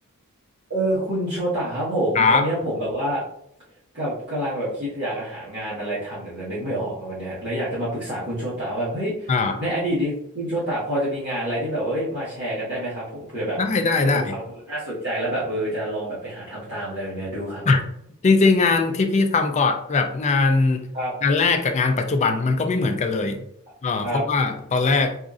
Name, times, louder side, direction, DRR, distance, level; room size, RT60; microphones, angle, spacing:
voice 1, 0.7-3.2 3.9-9.3 9.6-13.6 14.1-14.4 14.7-17.6 20.9-21.1 24.0-24.2, right 1 dB, 50° right, -10 dB, 1.3 m, -27 dB
voice 2, 2.1-2.5 9.3-9.6 13.6-14.3 17.7-17.8 18.2-20.9 21.2-23.4 23.8-25.2, left 3 dB, 30° left, 7 dB, 0.4 m, -20 dB
4.9 x 2.5 x 2.4 m, 0.74 s
head